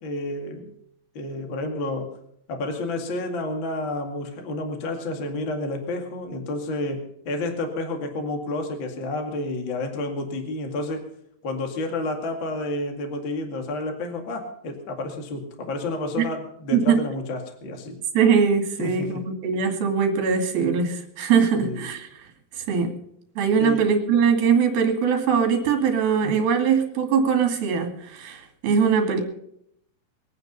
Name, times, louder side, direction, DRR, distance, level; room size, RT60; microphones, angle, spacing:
voice 1, 0.0-0.7 1.1-2.2 2.5-11.1 11.4-18.0 18.8-19.3 21.5-21.9 23.6-24.0 26.2-26.4, left 2 dB, 35° left, 4 dB, 2.2 m, -30 dB
voice 2, 18.1-22.1 22.6-22.9 23.4-29.2, right 6 dB, 65° right, 4 dB, 4.1 m, -21 dB
23.0 x 9.1 x 5.4 m, 0.72 s
omnidirectional pair, 4.8 m